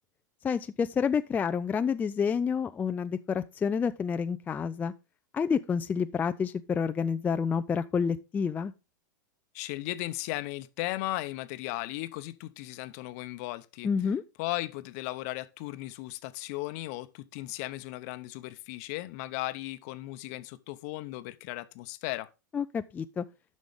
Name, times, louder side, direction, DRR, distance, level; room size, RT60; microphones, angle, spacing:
voice 1, 0.4-4.9 5.3-8.7 13.8-14.2 22.5-23.2, left 6 dB, 15° left, 0.3 m, -29 dB
voice 2, 9.5-13.9 14.4-22.3, left 18 dB, 50° left, 0.8 m, -36 dB
10.5 x 6.2 x 3.5 m
hypercardioid pair, 100°, 10 cm